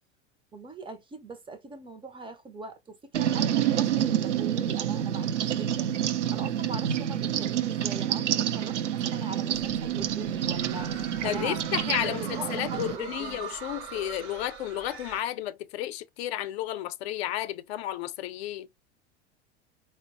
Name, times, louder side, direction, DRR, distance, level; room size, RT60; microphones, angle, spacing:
voice 1, 0.5-13.5, right 3 dB, 15° right, 0.4 m, -42 dB
sound 1, 3.1-13.0, right 10 dB, 85° right, 0.5 m, -28 dB
sound 2, 9.9-15.2, right 7 dB, 65° right, 0.9 m, -43 dB
voice 2, 11.2-18.7, left 13 dB, 65° left, 0.5 m, -32 dB
4.3 x 2.0 x 2.5 m
hypercardioid pair, 85°, 35 cm